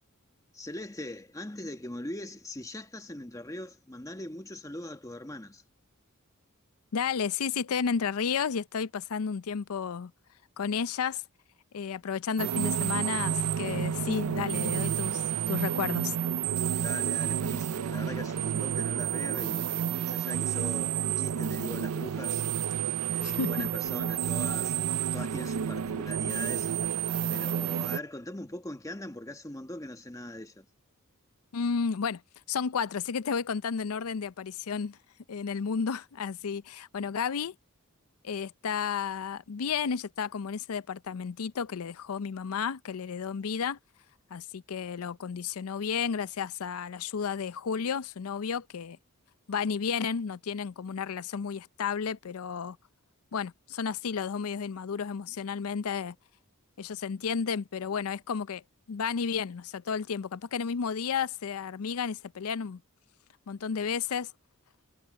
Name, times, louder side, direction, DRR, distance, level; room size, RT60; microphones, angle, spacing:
voice 1, 0.5-5.6 16.8-19.6 20.0-22.4 23.0-26.7 27.3-30.6, left 1 dB, 15° left, 1.4 m, -41 dB
voice 2, 6.9-10.1 10.6-11.2 11.7-16.1 23.2-23.7 31.5-32.2 32.5-35.0 35.3-37.6 38.2-43.8 44.3-49.0 49.5-52.8 53.3-56.2 56.8-58.6 58.9-62.8 63.5-64.3, left 6 dB, 75° left, 0.5 m, -32 dB
sound 1, 12.4-28.0, right 8 dB, 90° right, 0.4 m, -30 dB
head